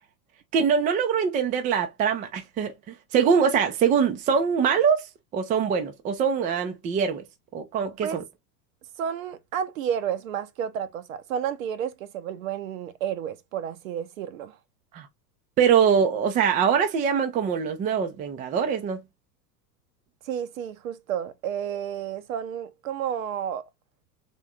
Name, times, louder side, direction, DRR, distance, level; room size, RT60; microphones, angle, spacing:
voice 1, 0.5-2.7 3.1-5.1 5.3-7.2 7.5-8.2 14.9-15.1 15.6-19.0, right 7 dB, 15° right, 0.5 m, -23 dB
voice 2, 9.0-14.6 20.2-23.6, right 9 dB, 55° right, 0.8 m, -31 dB
3.7 x 3.6 x 3.7 m
figure-of-eight pair, 85°, 49 cm